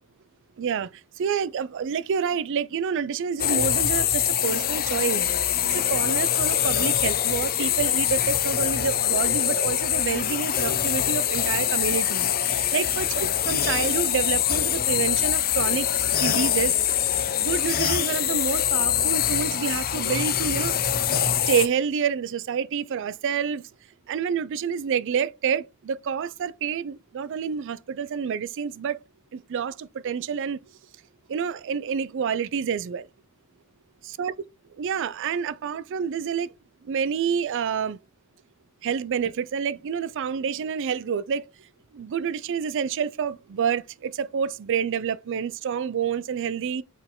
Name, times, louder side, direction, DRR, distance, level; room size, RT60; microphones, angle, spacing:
voice 1, 0.6-0.9 1.2-16.7 17.4-20.8 21.5-23.6 24.1-29.0 29.3-30.6 31.3-33.1 34.0-34.3 34.8-36.5 36.8-38.0 38.8-41.4 41.9-46.8, right 7 dB, 60° right, 0.4 m, -28 dB
sound 1, 3.4-21.7, left 10 dB, 45° left, 0.7 m, -24 dB
5.8 x 4.5 x 3.6 m
head